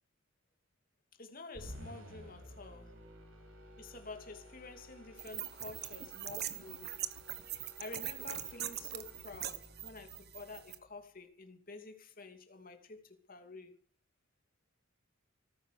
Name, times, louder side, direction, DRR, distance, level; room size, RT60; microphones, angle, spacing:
voice 1, 1.2-3.0 3.8-7.0 7.8-13.8, left 3 dB, 45° left, 2.8 m, -50 dB
sound 1, 1.5-10.9, equal, 85° right, 5.9 m, -54 dB
sound 2, 5.2-10.8, right 12 dB, 55° right, 1.4 m, -42 dB
18.5 x 9.8 x 6.9 m
head